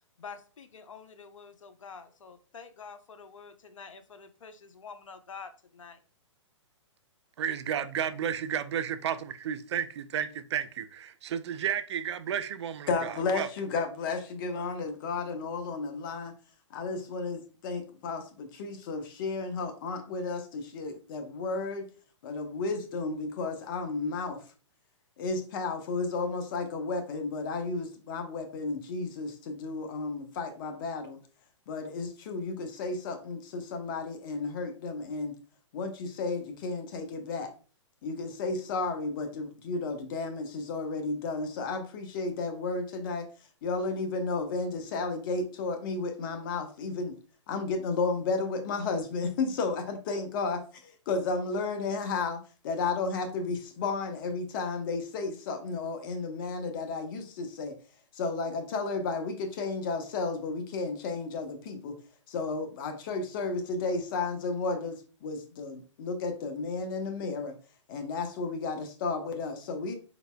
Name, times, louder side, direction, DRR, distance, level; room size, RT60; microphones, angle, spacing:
voice 1, 0.2-6.0, left 5 dB, 80° left, 0.6 m, -47 dB
voice 2, 7.4-13.5, right 9 dB, 60° right, 0.4 m, -32 dB
voice 3, 12.9-16.3 16.7-21.9 22.2-24.4 25.2-31.2 31.7-35.3 35.7-37.5 38.0-43.3 43.6-47.1 47.5-57.7 58.1-61.9 62.3-67.5 67.9-69.9, left 3 dB, 45° left, 0.9 m, -33 dB
4.1 x 4.0 x 2.2 m
hypercardioid pair, 130°, 16 cm